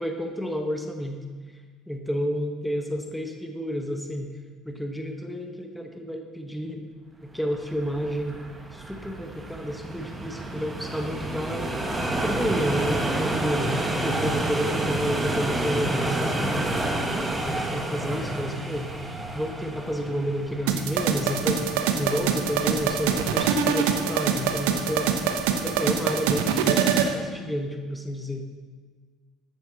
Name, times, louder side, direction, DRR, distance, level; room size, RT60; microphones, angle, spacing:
voice 1, 0.0-1.6 1.9-4.3 4.6-6.9 7.2-8.4 8.7-11.8 12.1-13.7 14.0-16.7 17.3-18.9 19.3-21.7 22.0-25.1 25.6-28.5, equal, 5° left, 3 dB, 1.5 m, -30 dB
sound 1, 7.5-25.8, right 1 dB, 20° right, 2.0 m, -30 dB
sound 2, 20.7-27.1, right 7 dB, 65° right, 1.0 m, -24 dB
14.0 x 11.0 x 4.2 m, 1.5 s
figure-of-eight pair, 60°, 0 cm